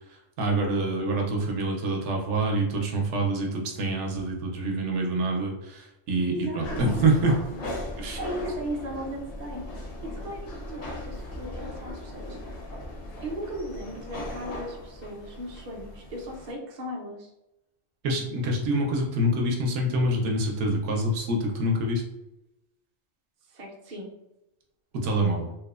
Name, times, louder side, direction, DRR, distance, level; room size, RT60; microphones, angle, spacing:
voice 1, 0.4-7.3 8.0-8.2 18.0-22.0 24.9-25.5, right 1 dB, 75° right, 0 dB, 0.9 m, -26 dB
voice 2, 6.3-7.1 7.5-7.6 8.2-9.7 10.0-12.4 13.2-17.3 23.5-24.1, equal, 50° right, -2 dB, 0.6 m, -37 dB
sound 1, 6.6-16.5, left 1 dB, 60° left, 0.7 m, -38 dB
2.9 x 2.0 x 2.3 m, 0.91 s
omnidirectional pair, 1.2 m